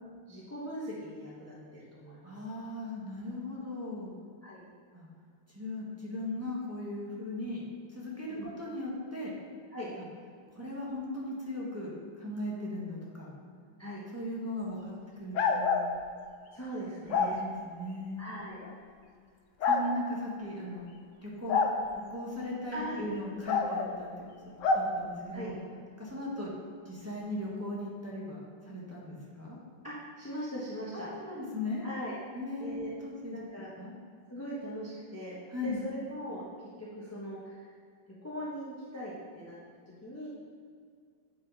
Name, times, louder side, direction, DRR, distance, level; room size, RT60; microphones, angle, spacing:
voice 1, 0.3-2.4 4.4-4.6 8.3-8.5 9.7-9.9 13.8-14.0 16.5-17.4 18.2-18.6 22.7-23.0 25.3-25.5 29.8-31.1 31.8-32.2 32.6-32.9 33.3-33.7 34.3-35.4 35.6-36.4 36.8-37.7 38.2-39.6 39.8-40.3, equal, 10° left, -7 dB, 0.7 m, -40 dB
voice 2, 2.2-4.1 4.9-5.1 5.5-7.6 7.9-9.3 10.5-11.9 12.2-13.3 14.1-15.8 17.1-18.3 19.7-20.9 21.2-21.6 22.1-25.6 26.0-26.5 26.8-29.6 30.9-31.8 32.3-33.4 33.8-33.9 35.5-35.8, left 1 dB, 10° right, -6 dB, 1.2 m, -38 dB
sound 1, 15.4-15.9 17.1-17.3 18.6-18.7 19.6-19.8 21.5-21.8 23.5-23.9 24.6-24.9, left 4 dB, 80° left, 0.6 m, -26 dB
8.6 x 5.7 x 4.1 m, 2.2 s
omnidirectional pair, 2.2 m